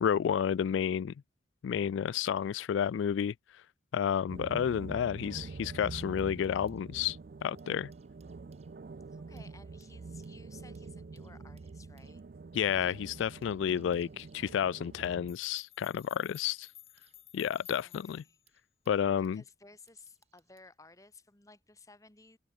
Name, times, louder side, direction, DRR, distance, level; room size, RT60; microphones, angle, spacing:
voice 1, 0.0-1.1 1.6-3.3 3.9-7.2 7.4-7.9 12.5-16.7 17.3-18.2 18.9-19.4, left 8 dB, 90° left, 0.3 m, -31 dB
sound 1, 4.3-15.3, right 4 dB, 50° right, 0.4 m, -46 dB
sound 2, 5.7-6.8 7.4-19.4 19.9-20.7 21.6-21.8, right 8 dB, 35° right, 6.2 m, -72 dB
voice 2, 9.1-12.2 17.8-18.4 18.9-22.4, left 3 dB, 20° left, 1.5 m, -57 dB
sound 3, 15.3-18.4, left 12 dB, 35° left, 1.5 m, -55 dB
head